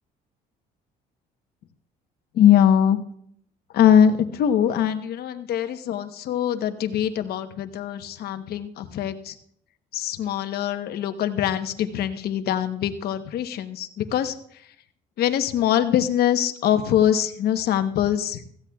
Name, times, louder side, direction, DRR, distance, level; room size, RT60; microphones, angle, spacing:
voice 1, 2.3-3.0 3.7-9.4 9.9-14.3 15.2-18.4, left 9 dB, 65° left, 9 dB, 1.0 m, -22 dB
16.5 x 15.0 x 2.3 m, 0.67 s
cardioid pair, 110°, 17 cm